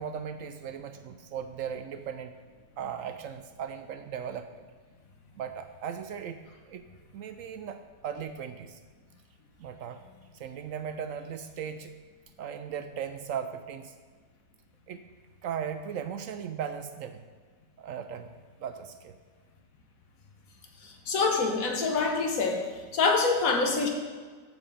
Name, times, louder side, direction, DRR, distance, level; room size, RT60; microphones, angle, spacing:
voice 1, 0.0-2.3 2.8-4.6 5.4-6.4 6.7-6.8 7.1-8.8 9.6-10.0 10.3-11.9 12.4-13.9 14.9-15.0 15.4-17.2 17.8-18.3 18.6-19.2, right 8 dB, 75° right, 9 dB, 0.7 m, -37 dB
voice 2, 20.8-22.6 22.9-23.9, left 4 dB, 55° left, 3 dB, 1.6 m, -25 dB
14.0 x 4.9 x 5.1 m, 1.5 s
omnidirectional pair, 1.9 m